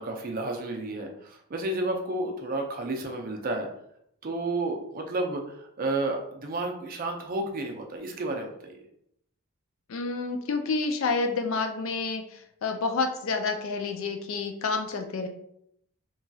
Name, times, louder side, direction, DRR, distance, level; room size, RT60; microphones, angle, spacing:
voice 1, 0.0-3.7 4.2-8.8, right 2 dB, 40° right, 2 dB, 0.4 m, -31 dB
voice 2, 9.9-15.3, left 4 dB, 60° left, 5 dB, 0.4 m, -29 dB
3.0 x 2.7 x 2.2 m, 0.73 s
head